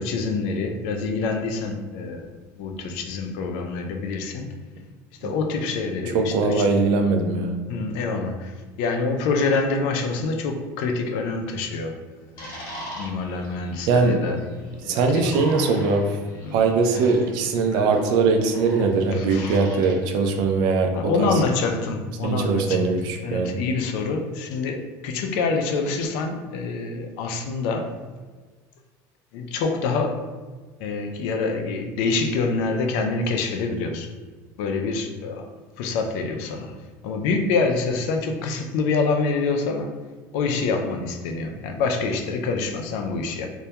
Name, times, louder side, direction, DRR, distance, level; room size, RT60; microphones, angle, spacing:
voice 1, 0.0-4.5 5.2-6.7 7.7-12.5 13.0-14.4 14.8-15.4 16.4-16.6 16.9-17.0 19.1-19.6 20.9-27.9 29.3-30.2 30.8-34.1 34.6-35.5 35.8-36.8 37.0-39.9 40.3-43.5, left 4 dB, 75° left, 4 dB, 0.4 m, -26 dB
voice 2, 6.1-7.6 13.9-14.2 14.9-16.2 16.5-20.9 21.2-21.3 22.2-23.6, right 4 dB, 65° right, 4 dB, 0.4 m, -21 dB
sound 1, 12.4-19.9, equal, 60° left, 1.1 m, -41 dB
2.2 x 2.1 x 2.8 m, 1.4 s
cardioid pair, 130°, 8 cm